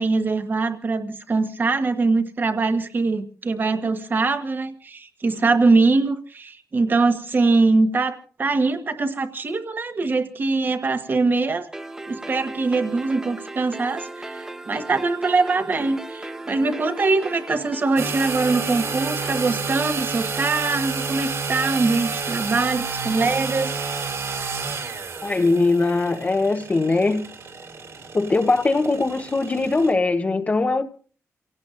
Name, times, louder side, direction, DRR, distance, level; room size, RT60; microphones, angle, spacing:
voice 1, 0.0-11.7 12.1-23.8, right 3 dB, 35° right, 1.4 m, -22 dB
sound 1, 11.7-19.7, right 2 dB, 10° right, 0.9 m, -37 dB
sound 2, 18.0-29.9, right 4 dB, 60° right, 3.6 m, -30 dB
voice 2, 25.2-27.3 28.1-30.8, left 3 dB, 25° left, 0.9 m, -21 dB
29.0 x 17.5 x 2.5 m
wide cardioid pair, 150°, 5 cm